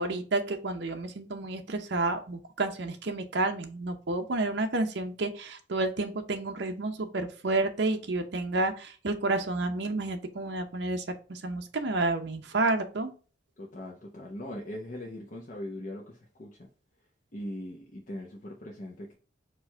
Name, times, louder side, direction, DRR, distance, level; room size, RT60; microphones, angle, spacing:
voice 1, 0.0-13.1, right 2 dB, 65° right, 0.7 m, -30 dB
voice 2, 13.6-16.5 17.3-19.1, left 1 dB, 45° left, 0.8 m, -40 dB
4.5 x 2.6 x 4.3 m
head